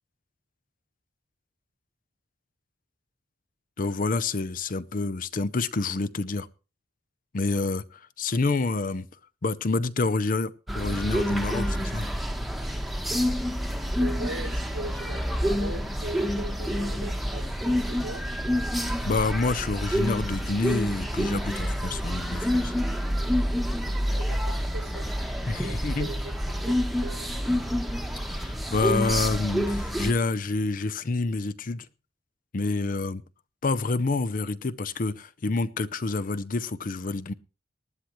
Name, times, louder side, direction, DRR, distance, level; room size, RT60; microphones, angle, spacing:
voice 1, 3.8-6.5 7.3-9.1 9.4-12.1 18.8-22.7 25.5-26.1 28.2-31.9 32.5-33.2 33.6-37.3, left 3 dB, 45° left, 0.6 m, -28 dB
sound 1, 10.7-30.1, equal, ahead, 1.1 m, -28 dB
voice 2, 14.0-18.2 24.2-25.1 25.6-26.3 26.6-27.3, right 2 dB, 85° right, 1.4 m, -39 dB
19.5 x 11.5 x 3.1 m
head